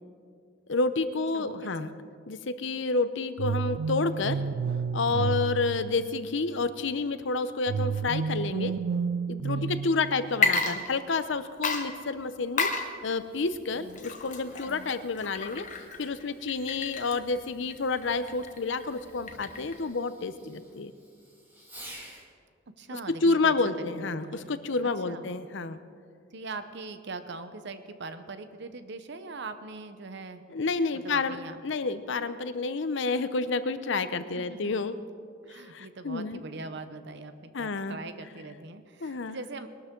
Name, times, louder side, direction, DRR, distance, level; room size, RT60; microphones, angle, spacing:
voice 1, 0.7-1.9 2.3-4.4 4.9-8.8 9.3-12.7 13.0-15.7 16.0-20.9 22.9-25.8 30.5-31.4 31.6-35.0 35.5-36.4 37.5-38.0 39.0-39.4, left 3 dB, 65° left, 12 dB, 0.7 m, -29 dB
voice 2, 1.3-1.7 5.1-5.4 9.5-9.8 13.8-14.1 14.6-15.0 22.8-23.5 24.2-24.6 25.1-25.3 26.3-30.4 30.9-31.6 34.4-34.7 35.5-39.7, right 3 dB, 60° right, 10 dB, 0.9 m, -41 dB
sound 1, 3.4-6.5 7.7-10.6, right 5 dB, 80° right, 0.3 m, -31 dB
Water / Liquid, 10.3-11.3 11.6-19.9, left 4 dB, 40° left, 1.2 m, -32 dB
Fireworks, 13.1-22.3 24.3-24.6 25.3-25.4, right 1 dB, 10° right, 2.3 m, -53 dB
21.5 x 12.5 x 3.8 m, 2.3 s
head